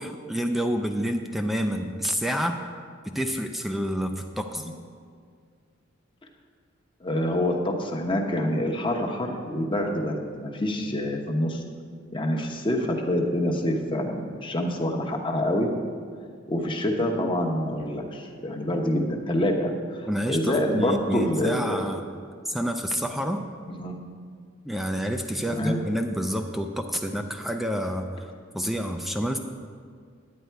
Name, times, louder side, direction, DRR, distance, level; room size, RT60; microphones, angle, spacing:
voice 1, 0.0-2.6 3.1-4.7 20.1-22.1 22.5-23.5 24.7-29.4, equal, ahead, 4 dB, 0.4 m, -28 dB
voice 2, 7.0-11.6 12.1-15.7 16.5-21.8 23.8-24.0 25.5-25.8, left 1 dB, 25° left, 2 dB, 1.0 m, -26 dB
9.5 x 9.2 x 4.5 m, 2.1 s
head